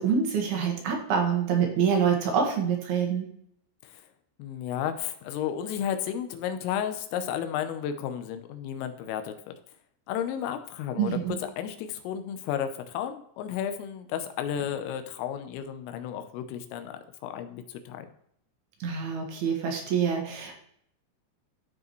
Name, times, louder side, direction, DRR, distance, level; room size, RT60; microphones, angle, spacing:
voice 1, 0.0-3.3 11.0-11.4 18.8-20.5, right 7 dB, 65° right, 1 dB, 3.0 m, -26 dB
voice 2, 4.4-9.5 10.1-11.1 11.6-18.1, left 9 dB, 85° left, 8 dB, 3.4 m, -33 dB
14.5 x 4.9 x 3.1 m, 0.69 s
omnidirectional pair, 5.8 m